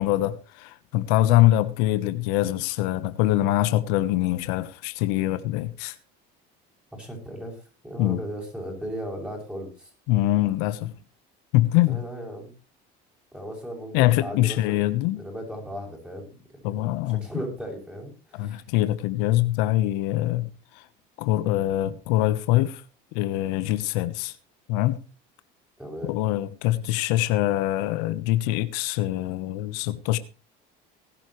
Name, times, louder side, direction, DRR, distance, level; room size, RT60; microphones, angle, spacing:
voice 1, 0.0-5.9 8.0-8.2 10.1-10.9 11.5-12.0 13.9-15.2 16.6-17.2 18.4-20.5 21.2-22.8 23.1-24.3 24.7-25.0 26.0-30.2, left 15 dB, 85° left, 1.1 m, -23 dB
voice 2, 6.9-7.6 7.8-9.9 11.9-12.5 13.3-18.6 25.8-26.1, right 1 dB, 5° right, 7.3 m, -37 dB
19.0 x 11.5 x 3.2 m
cardioid pair, 125°, 20 cm